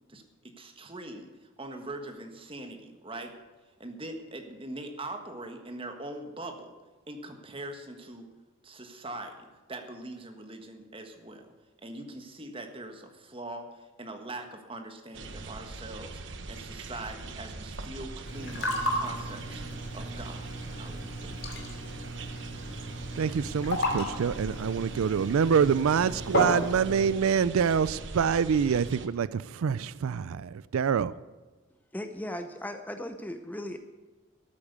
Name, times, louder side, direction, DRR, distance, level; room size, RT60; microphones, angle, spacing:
voice 1, 0.1-3.3 3.8-6.7 7.1-8.3 8.6-11.5 11.8-16.2 16.5-19.6 19.9-21.4, right 2 dB, 25° right, 1.5 m, -42 dB
sound 1, 15.1-29.1, right 3 dB, 60° right, 1.0 m, -42 dB
sound 2, 18.2-27.1, left 1 dB, 50° left, 2.5 m, -34 dB
voice 2, 23.2-31.1, right 7 dB, 80° right, 0.4 m, -26 dB
voice 3, 31.9-33.8, left 1 dB, 10° left, 0.7 m, -37 dB
13.0 x 8.7 x 8.1 m
head